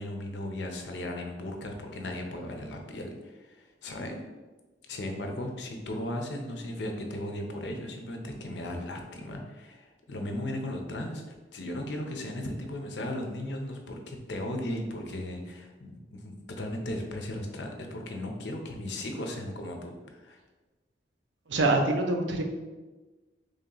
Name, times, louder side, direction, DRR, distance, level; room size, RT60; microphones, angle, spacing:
voice 1, 0.0-4.2 4.9-20.4, left 1 dB, 70° left, 3 dB, 0.6 m, -36 dB
voice 2, 21.5-22.4, right 2 dB, 85° right, 4 dB, 0.5 m, -25 dB
3.2 x 2.8 x 3.8 m, 1.2 s
head